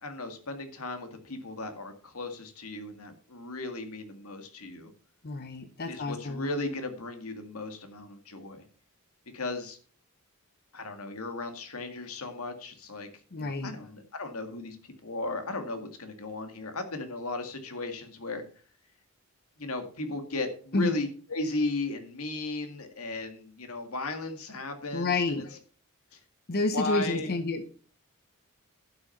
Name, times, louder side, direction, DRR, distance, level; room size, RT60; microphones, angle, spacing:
voice 1, 0.0-4.9 5.9-8.6 9.3-9.8 10.7-13.1 13.4-18.4 19.6-25.4 26.1-26.2 26.7-27.4, left 2 dB, 75° left, 7 dB, 2.0 m, -36 dB
voice 2, 5.2-6.5 13.3-13.7 20.7-21.0 24.9-25.5 26.5-27.6, left 3 dB, 45° left, 8 dB, 0.8 m, -29 dB
11.5 x 6.3 x 5.7 m, 0.40 s
head